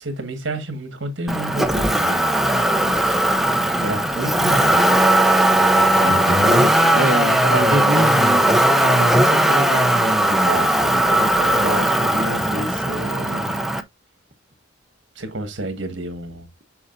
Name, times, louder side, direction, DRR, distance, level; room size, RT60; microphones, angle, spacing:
voice 1, 0.0-2.3 3.8-5.0 5.5-6.2 7.4-7.8 8.8-13.6 15.2-16.5, right 1 dB, 60° right, 1.9 m, -29 dB
Motor vehicle (road), 1.3-13.8, right 1 dB, ahead, 0.5 m, -18 dB
voice 2, 6.0-8.5, equal, 35° right, 1.1 m, -24 dB
6.9 x 6.2 x 2.6 m
head